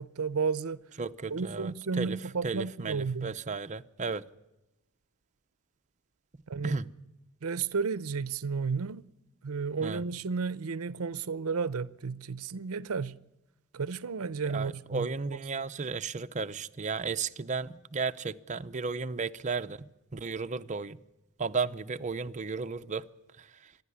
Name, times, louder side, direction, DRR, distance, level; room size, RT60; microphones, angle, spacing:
voice 1, 0.0-0.8 1.3-3.3 6.5-6.8 7.4-9.0 9.4-13.2 13.7-15.4, right 5 dB, 90° right, 0.6 m, -33 dB
voice 2, 1.0-4.2 6.6-6.9 9.8-10.0 14.5-21.0 21.4-23.1 23.4-23.7, right 4 dB, 35° right, 0.7 m, -34 dB
26.0 x 11.0 x 9.7 m
head